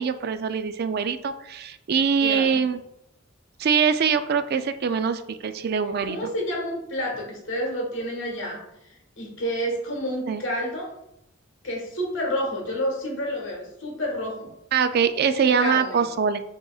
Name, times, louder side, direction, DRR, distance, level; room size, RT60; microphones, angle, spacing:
voice 1, 0.0-2.8 3.6-6.3 10.3-10.4 14.7-16.4, right 6 dB, 45° right, 11 dB, 0.3 m, -23 dB
voice 2, 2.2-2.6 6.1-10.9 11.6-14.5 15.3-16.1, equal, 60° left, -2 dB, 1.5 m, -29 dB
7.7 x 2.9 x 2.3 m, 0.82 s
head